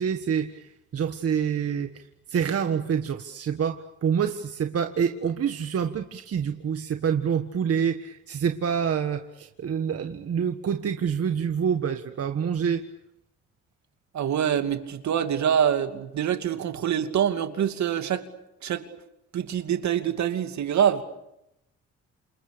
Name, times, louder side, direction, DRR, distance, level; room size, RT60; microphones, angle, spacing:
voice 1, 0.0-12.8, right 7 dB, 50° right, 1.6 m, -27 dB
voice 2, 14.1-18.3 18.6-18.9 19.3-21.0, right 9 dB, 65° right, 2.7 m, -25 dB
28.5 x 27.5 x 6.9 m
cardioid pair, 90°, 30 cm